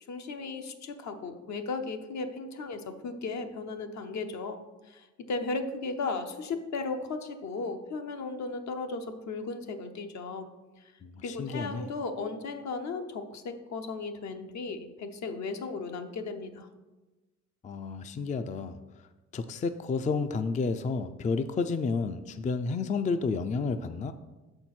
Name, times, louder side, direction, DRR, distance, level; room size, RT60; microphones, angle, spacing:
voice 1, 0.1-10.5 11.2-16.7, left 3 dB, 65° left, 6 dB, 0.9 m, -36 dB
voice 2, 11.0-11.9 17.6-18.8 19.3-24.1, left 4 dB, 25° left, 9 dB, 0.4 m, -31 dB
6.3 x 4.4 x 6.0 m, 1.1 s
cardioid pair, 90°, 30 cm